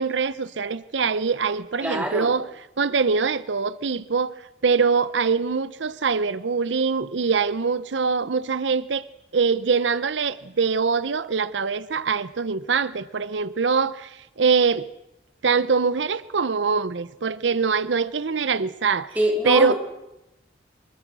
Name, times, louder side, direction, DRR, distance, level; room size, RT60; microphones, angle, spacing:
voice 1, 0.0-2.5 2.8-4.3 4.6-9.0 9.3-14.9 15.4-19.1 19.4-19.7, right 5 dB, 90° right, 0.7 m, -23 dB
voice 2, 1.8-2.3 19.2-19.7, right 1 dB, 10° right, 3.7 m, -24 dB
24.0 x 21.0 x 6.2 m
head